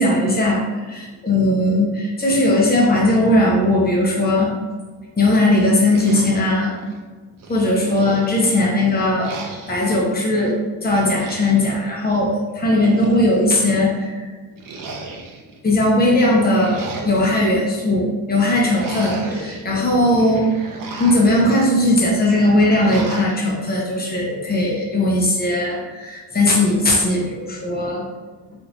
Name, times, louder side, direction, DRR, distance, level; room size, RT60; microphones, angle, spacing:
voice 1, 0.0-4.5 5.2-6.7 7.5-9.3 9.7-10.5 10.8-14.3 15.6-16.8 17.0-20.5 21.0-28.0, left 1 dB, 20° left, -3 dB, 0.9 m, -18 dB
sound 1, 5.9-7.0 7.4-8.6 9.2-9.9 11.0-11.8 12.5-13.5 14.6-15.6 16.3-17.6 18.4-19.6 20.0-21.4 22.3-23.4, right 3 dB, 40° right, 0.6 m, -35 dB
3.3 x 3.2 x 2.6 m, 1.3 s
cardioid pair, 110°, 50 cm